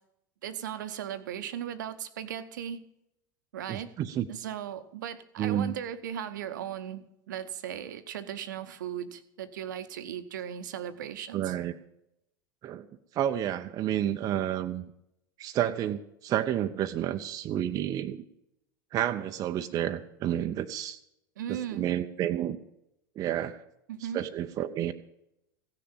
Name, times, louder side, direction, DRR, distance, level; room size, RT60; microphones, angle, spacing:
voice 1, 0.4-2.8 3.5-3.9 4.3-11.5 21.4-21.9 23.9-24.2, right 10 dB, 60° right, 12 dB, 0.9 m, -37 dB
voice 2, 3.7-4.3 5.4-5.7 11.3-11.7 12.6-12.8 13.1-14.8 15.4-18.2 18.9-21.0 21.5-22.6 23.2-23.6 24.1-24.9, right 11 dB, 35° right, 7 dB, 0.6 m, -30 dB
15.5 x 6.8 x 8.8 m, 0.81 s
figure-of-eight pair, 80°, 11 cm